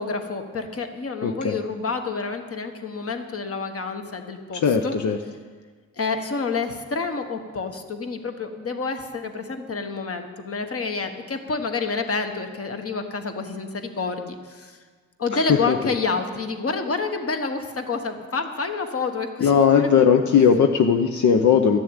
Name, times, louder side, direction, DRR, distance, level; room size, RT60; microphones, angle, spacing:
voice 1, 0.0-5.0 6.0-14.8 15.2-19.9, left 4 dB, 50° left, 6 dB, 1.3 m, -28 dB
voice 2, 1.2-1.6 4.5-5.2 15.5-15.9 19.4-21.8, left 7 dB, 80° left, 5 dB, 0.7 m, -18 dB
12.5 x 7.0 x 8.9 m, 1.5 s
cardioid pair, 80°, 29 cm